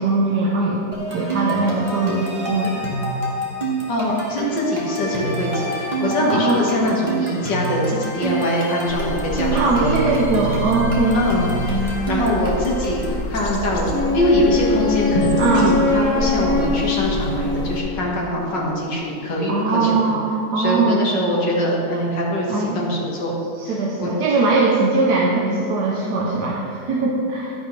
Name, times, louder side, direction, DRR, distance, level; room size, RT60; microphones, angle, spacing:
voice 1, 0.0-2.7 6.2-6.7 9.5-11.3 15.4-15.7 19.5-21.0 22.5-22.8 23.5-27.5, right 3 dB, 70° right, -3 dB, 1.5 m, -20 dB
sound 1, 0.9-13.2, right 2 dB, 25° right, 2.0 m, -27 dB
voice 2, 3.9-10.1 11.1-11.5 12.1-13.0 13.3-20.1 20.6-23.4 24.0-24.1, left 1 dB, 90° left, -3 dB, 2.3 m, -22 dB
sound 2, 8.9-17.8, left 1 dB, 45° left, 1.4 m, -29 dB
Wind instrument woodwind instrument, 13.9-18.3, left 3 dB, 10° left, 2.2 m, -23 dB
12.5 x 10.5 x 3.3 m, 2.6 s
omnidirectional pair, 1.9 m